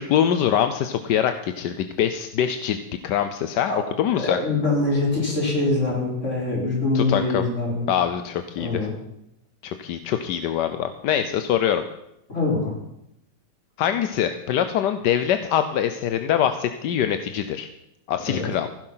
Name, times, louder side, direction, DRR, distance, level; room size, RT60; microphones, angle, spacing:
voice 1, 0.0-2.8 3.0-4.4 6.9-7.5 7.9-8.9 9.6-11.8 13.8-17.7 18.1-18.7, left 9 dB, 85° left, 9 dB, 1.4 m, -24 dB
voice 2, 4.1-7.9 8.6-8.9 12.3-12.7 18.3-18.4, left 2 dB, 45° left, -2 dB, 4.5 m, -24 dB
15.5 x 11.0 x 5.7 m, 0.82 s
omnidirectional pair, 1.8 m